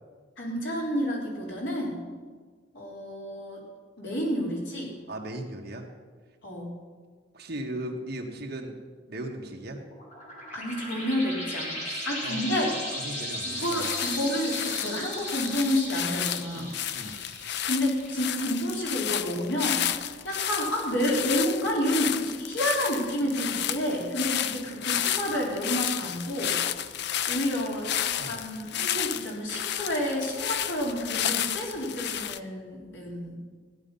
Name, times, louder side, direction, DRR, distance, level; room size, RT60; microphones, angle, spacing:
voice 1, 0.4-2.0 2.7-3.6 4.0-4.9 6.4-6.7 10.5-12.7 13.4-16.7 17.7-19.9 20.2-26.6 27.3-33.4, equal, 80° left, -3 dB, 3.9 m, -30 dB
voice 2, 5.1-5.9 7.3-8.8 9.1-9.8 11.9-12.5 13.0-14.0 16.5-17.2 28.2-28.4, right 1 dB, 60° right, 1 dB, 1.7 m, -37 dB
sound 1, 9.8-19.0, left 1 dB, 40° left, 2.9 m, -37 dB
sound 2, 13.6-32.4, left 10 dB, 65° left, 0.5 m, -32 dB
15.0 x 10.5 x 5.6 m, 1.5 s
head